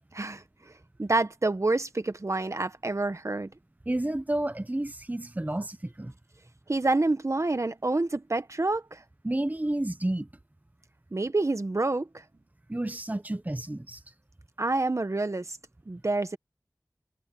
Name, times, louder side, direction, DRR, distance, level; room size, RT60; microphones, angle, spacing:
voice 1, 0.1-0.4 1.0-3.5 6.7-9.0 11.1-12.2 14.6-15.6 15.9-16.4, right 2 dB, 50° right, 1.3 m, -27 dB
voice 2, 3.9-6.1 9.2-10.3 12.7-14.0, right 1 dB, 25° right, 1.2 m, -30 dB
wide cardioid pair, 50°, 6 cm